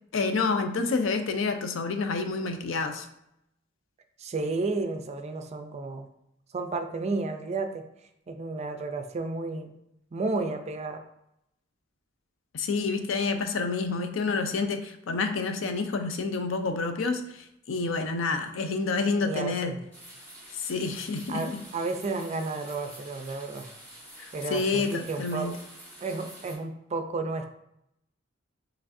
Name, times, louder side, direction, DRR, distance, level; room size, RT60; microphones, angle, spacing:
voice 1, 0.1-3.1 12.5-19.8 20.5-21.6 24.2-25.5, left 4 dB, 70° left, 7 dB, 0.4 m, -28 dB
voice 2, 4.2-6.1 6.5-7.8 8.3-9.7 10.1-11.0 19.2-19.8 21.3-23.7 24.3-25.6 26.0-27.5, right 3 dB, 35° right, 7 dB, 0.4 m, -32 dB
sound 1, 19.9-26.6, right 1 dB, 10° left, 1.3 m, -48 dB
4.7 x 3.2 x 2.6 m, 0.80 s
head